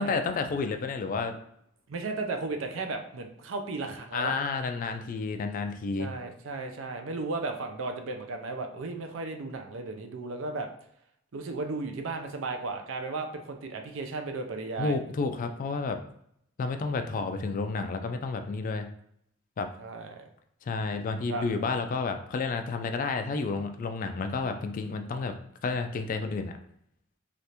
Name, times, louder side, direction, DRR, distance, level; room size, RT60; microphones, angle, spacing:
voice 1, 0.0-1.4 4.1-6.1 14.8-16.0 16.6-18.9 19.6-19.7 20.6-25.4 25.6-26.6, left 4 dB, 40° left, 7 dB, 0.3 m, -30 dB
voice 2, 1.9-4.3 6.0-10.7 11.3-15.0 19.8-20.2 21.3-21.4, right 3 dB, 70° right, 5 dB, 0.5 m, -35 dB
3.4 x 2.4 x 2.8 m, 0.70 s
head